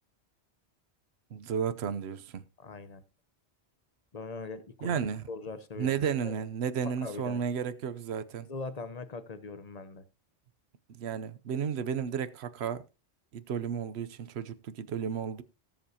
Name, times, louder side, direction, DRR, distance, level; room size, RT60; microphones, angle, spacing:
voice 1, 1.3-2.4 4.8-5.2 5.8-8.5 10.9-12.8 13.3-15.4, right 7 dB, 70° right, 1.1 m, -33 dB
voice 2, 2.6-3.0 4.1-5.0 5.3-5.9 6.2-6.3 7.0-7.4 8.5-10.0, left 3 dB, 35° left, 1.1 m, -41 dB
18.5 x 7.5 x 2.8 m
omnidirectional pair, 1.1 m